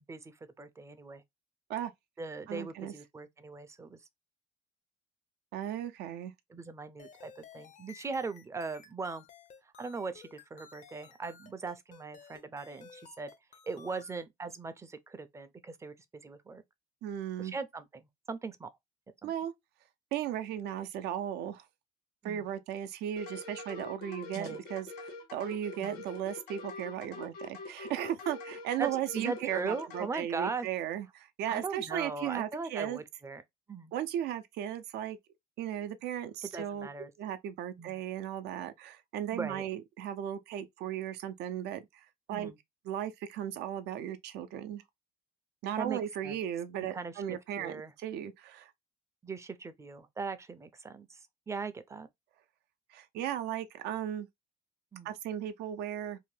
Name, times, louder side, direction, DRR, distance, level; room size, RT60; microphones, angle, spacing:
voice 1, 0.1-1.2 2.2-4.0 6.5-9.2 9.8-13.3 13.7-15.9 16.2-16.6 17.4-18.7 19.2-19.3 22.2-22.5 24.3-24.6 25.8-26.0 28.8-28.9 29.1-30.7 31.5-33.4 33.7-33.9 36.4-37.1 37.8-38.0 39.3-39.6 42.3-42.6 45.8-46.4 46.9-47.9 49.2-51.2 51.5-52.1 54.9-55.1, right 4 dB, 15° right, 0.4 m, -39 dB
voice 2, 2.5-2.9 5.5-6.3 17.0-17.5 19.2-19.5 20.1-21.6 22.2-33.0 33.9-35.2 35.6-36.9 37.2-42.5 42.9-44.8 45.6-48.7 52.9-54.3 55.0-56.2, right 10 dB, 80° right, 0.5 m, -36 dB
sound 1, 7.0-14.2, left 6 dB, 45° left, 0.5 m, -55 dB
sound 2, 23.2-30.1, left 3 dB, 80° left, 1.4 m, -44 dB
2.7 x 2.1 x 3.1 m
cardioid pair, 110°, 17 cm